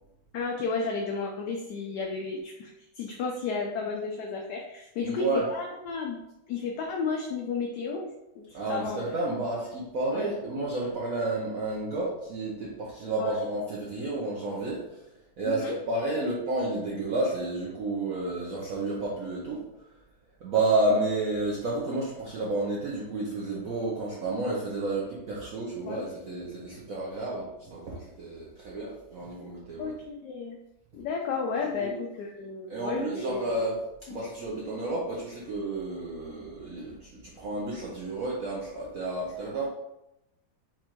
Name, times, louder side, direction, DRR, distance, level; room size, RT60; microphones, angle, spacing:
voice 1, 0.3-6.2 6.5-8.1 8.4-9.1 10.1-10.3 13.2-13.3 15.4-15.8 25.9-26.1 29.8-30.6 30.9-33.5 34.1-34.2, left 4 dB, 70° left, 0 dB, 1.1 m, -33 dB
voice 2, 5.0-5.4 8.5-15.0 15.4-19.6 20.4-29.9 31.8-31.9 32.7-39.7, right 2 dB, 60° right, -5 dB, 0.9 m, -31 dB
4.4 x 2.5 x 4.4 m, 0.87 s
omnidirectional pair, 2.1 m